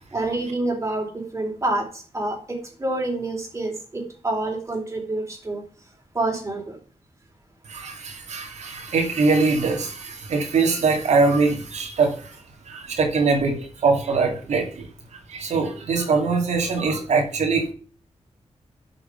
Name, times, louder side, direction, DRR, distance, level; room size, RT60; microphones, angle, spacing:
voice 1, 0.1-5.6 6.1-6.8, right 2 dB, 25° right, 0 dB, 4.4 m, -27 dB
voice 2, 7.7-12.4 12.7-14.8 15.3-17.7, right 4 dB, 85° right, 1 dB, 2.5 m, -22 dB
11.5 x 6.9 x 5.2 m, 0.40 s
wide cardioid pair, 105°, 11 cm